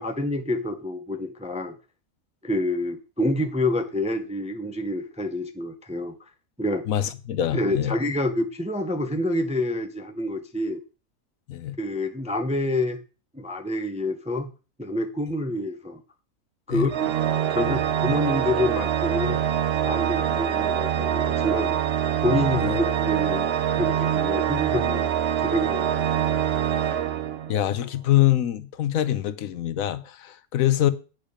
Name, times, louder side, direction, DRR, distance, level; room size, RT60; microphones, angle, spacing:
voice 1, 0.0-1.8 2.4-6.1 6.6-6.8 7.5-10.8 11.8-13.0 13.3-14.5 14.8-16.0 16.7-17.1 17.5-19.4 19.8-21.8 22.2-23.5 23.8-26.3, left 1 dB, 5° right, 0.5 m, -27 dB
voice 2, 6.9-7.9 11.5-11.8 16.7-16.9 22.5-22.8 27.5-30.9, left 13 dB, 75° left, 1.1 m, -24 dB
Organ, 16.9-27.8, right 9 dB, 55° right, 0.8 m, -25 dB
8.9 x 6.5 x 5.1 m
omnidirectional pair, 1.5 m